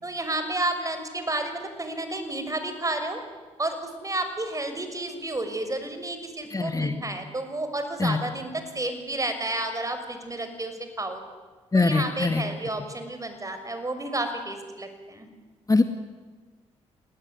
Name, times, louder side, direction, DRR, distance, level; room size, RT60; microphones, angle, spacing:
voice 1, 0.0-3.2 3.6-11.2 11.7-15.3, right 2 dB, 25° right, 8 dB, 6.3 m, -31 dB
voice 2, 6.5-6.9 8.0-8.2 11.7-12.4 15.7-15.8, left 3 dB, 25° left, 8 dB, 2.0 m, -22 dB
29.0 x 19.0 x 10.0 m, 1.3 s
supercardioid pair, 50°, 14 cm